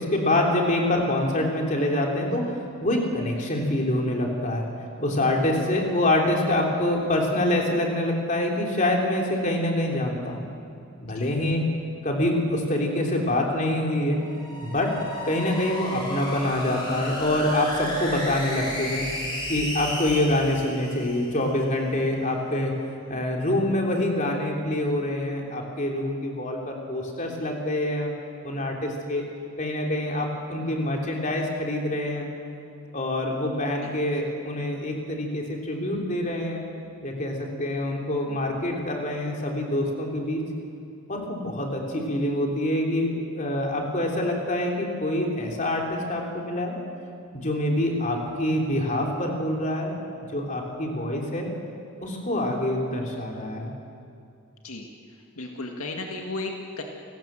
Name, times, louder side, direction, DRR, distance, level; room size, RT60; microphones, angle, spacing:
voice 1, 0.0-2.5 2.8-4.7 5.0-10.5 11.0-11.7 12.0-14.2 14.6-14.9 15.3-19.1 19.5-22.7 23.1-28.1 28.4-29.2 29.6-32.3 32.9-36.7 37.0-40.4 41.1-46.8 47.3-50.0 50.3-51.5 52.0-53.7, left 1 dB, 35° left, 0 dB, 3.6 m, -26 dB
sound 1, 14.2-21.7, left 1 dB, 20° left, 6.0 m, -34 dB
voice 2, 55.4-56.8, left 2 dB, 75° left, 1 dB, 2.0 m, -34 dB
28.5 x 19.0 x 7.7 m, 2.5 s
head